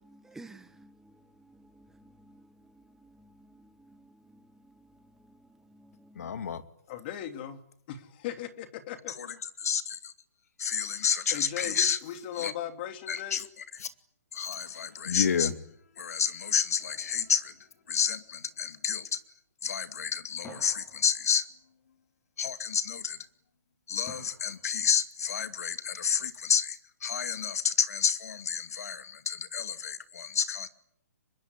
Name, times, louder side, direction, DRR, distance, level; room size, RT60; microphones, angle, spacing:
voice 1, 0.1-6.5, right 2 dB, 5° right, 1.6 m, -55 dB
voice 2, 6.2-6.6 9.2-9.3 9.6-10.1 10.6-12.0 12.4-12.5 13.1-13.5 13.7-13.9 14.3-15.6 16.0-17.6 17.9-19.2 19.6-21.5 22.4-23.2 23.9-30.7, left 7 dB, 70° left, 2.4 m, -30 dB
voice 3, 6.9-7.6 7.9-9.1 11.3-13.4, left 10 dB, 40° left, 3.0 m, -38 dB
sound 1, 16.8-18.4 20.4-21.8 24.1-25.2, left 1 dB, 20° left, 7.1 m, -52 dB
25.0 x 22.0 x 10.0 m
hypercardioid pair, 145°, 9 cm